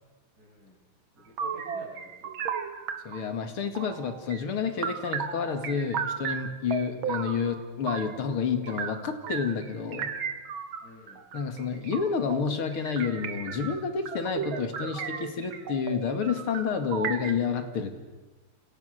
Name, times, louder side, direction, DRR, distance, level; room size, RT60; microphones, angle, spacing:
voice 1, 0.4-0.8 1.1-2.3 10.8-11.2 17.8-17.9, equal, 45° right, -8 dB, 8.7 m, -52 dB
sound 1, 1.4-3.3 3.8-4.4 4.8-8.2 8.6-17.3, right 7 dB, 70° right, 2.2 m, -35 dB
voice 2, 3.0-10.1 11.3-17.9, left 6 dB, 75° left, 7 dB, 3.1 m, -29 dB
28.5 x 28.0 x 6.7 m, 1.2 s
omnidirectional pair, 2.4 m